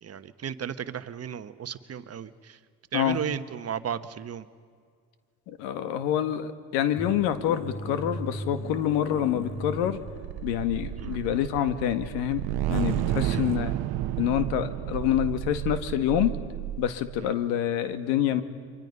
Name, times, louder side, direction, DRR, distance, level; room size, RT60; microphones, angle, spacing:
voice 1, 0.0-2.6 2.9-4.5 11.0-11.2 13.2-13.5 17.2-17.3, right 8 dB, 35° right, 12 dB, 1.2 m, -34 dB
voice 2, 5.5-10.0 10.4-13.8 14.2-16.4 16.8-18.4, left 10 dB, 75° left, 11 dB, 1.8 m, -27 dB
sound 1, 7.0-10.7 11.0-11.1 12.7-13.6, left 1 dB, 35° left, 2.0 m, -37 dB
sound 2, 8.8-17.2, right 14 dB, 60° right, 0.9 m, -32 dB
30.0 x 24.5 x 5.5 m, 2.1 s
hypercardioid pair, 80°, 44 cm